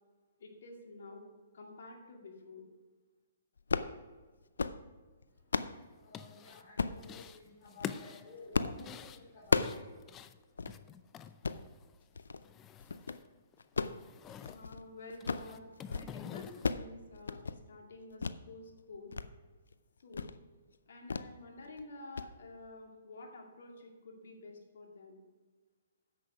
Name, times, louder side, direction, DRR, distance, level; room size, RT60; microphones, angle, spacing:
voice 1, 0.4-1.2 1.5-2.7 14.5-19.1 20.0-20.3 20.9-25.2, left 2 dB, 70° left, 1 dB, 2.4 m, -50 dB
sound 1, 3.6-4.0 4.4-4.8 5.2-5.8 6.8-7.0 7.7-8.0 8.5-8.8 9.1-9.8 10.2-10.3 10.6-10.8 11.3-11.6 12.1-12.4 12.8-13.2 13.6-14.8 15.1-15.5 15.8-16.1 16.4-16.9 17.2-17.6 18.2-18.4 18.8-19.3 19.6-19.7 20.1-20.4 21.1-21.3 21.6-21.8 22.2-22.3, left 4 dB, 85° left, 0.5 m, -34 dB
voice 2, 5.3-10.3, left 2 dB, 40° left, -6 dB, 3.7 m, -54 dB
sound 2, 5.9-6.7 7.0-7.4 7.7-12.0 12.2-13.3 13.5-14.6 15.1-16.7, left 8 dB, 20° left, 0.5 m, -47 dB
10.0 x 7.9 x 4.9 m, 1.4 s
hypercardioid pair, 140°, 0 cm